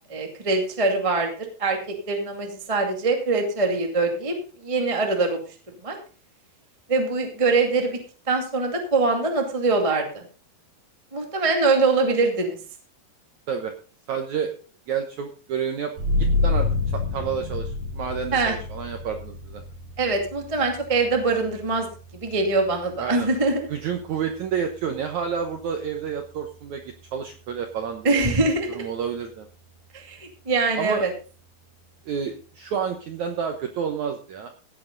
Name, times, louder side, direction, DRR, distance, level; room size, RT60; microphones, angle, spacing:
voice 1, 0.1-1.8 2.1-4.3 4.6-5.4 5.8-6.0 6.9-8.0 8.3-10.2 11.1-12.6 18.3-18.6 20.0-21.9 22.2-23.6 28.0-28.8 29.9-31.1, right 3 dB, 15° right, 3 dB, 1.0 m, -23 dB
voice 2, 14.1-14.5 14.9-15.9 16.2-19.6 23.0-23.3 23.7-28.2 28.7-29.5 30.8-31.1 32.0-34.5, right 7 dB, 80° right, 5 dB, 1.7 m, -29 dB
sound 1, 16.0-27.2, left 3 dB, 50° right, 5.0 m, -30 dB
16.5 x 8.6 x 3.9 m, 0.37 s
omnidirectional pair, 4.9 m